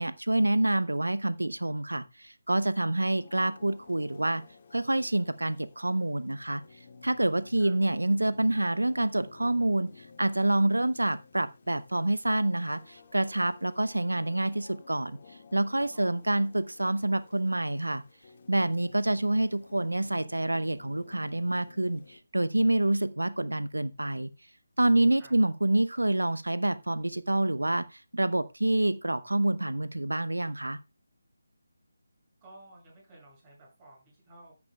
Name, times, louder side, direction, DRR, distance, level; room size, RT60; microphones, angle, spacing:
voice 1, 0.0-4.4 4.7-6.6 7.0-15.2 15.5-18.0 18.5-24.3 24.8-30.8, right 1 dB, 80° right, 0.7 m, -27 dB
sound 1, 3.1-22.2, left 4 dB, 35° left, 1.8 m, -55 dB
voice 2, 7.3-7.8 15.9-16.4 24.9-25.4 32.4-34.5, right 2 dB, 20° right, 7.3 m, -54 dB
13.5 x 9.5 x 2.3 m
figure-of-eight pair, 155°, 0 cm